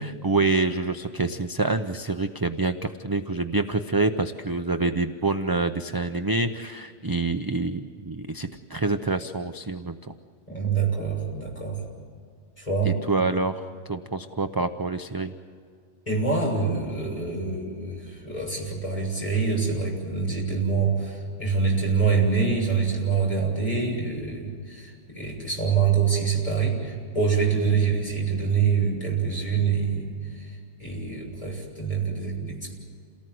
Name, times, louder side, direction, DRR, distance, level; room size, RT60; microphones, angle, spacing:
voice 1, 0.0-10.1 12.8-15.3 27.7-27.9, right 3 dB, 25° right, 7 dB, 0.6 m, -27 dB
voice 2, 10.5-11.8 12.6-13.0 16.1-30.1 30.3-32.8, right 5 dB, 30° left, -2 dB, 7.2 m, -25 dB
28.5 x 18.5 x 7.8 m, 2.2 s
omnidirectional pair, 1.2 m